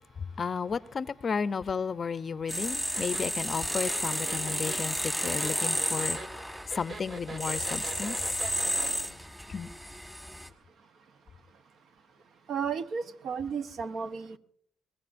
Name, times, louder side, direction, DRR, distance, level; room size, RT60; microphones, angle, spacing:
voice 1, 0.4-6.2 6.7-8.2 9.5-9.7, left 5 dB, 40° left, 0.5 m, -33 dB
sound 1, 2.5-10.5, equal, 10° right, 1.6 m, -32 dB
sound 2, 2.9-8.9, right 2 dB, 45° right, 2.5 m, -42 dB
voice 2, 12.5-14.4, right 6 dB, 65° right, 0.9 m, -33 dB
23.0 x 19.5 x 2.6 m
cardioid pair, 90°, 0 cm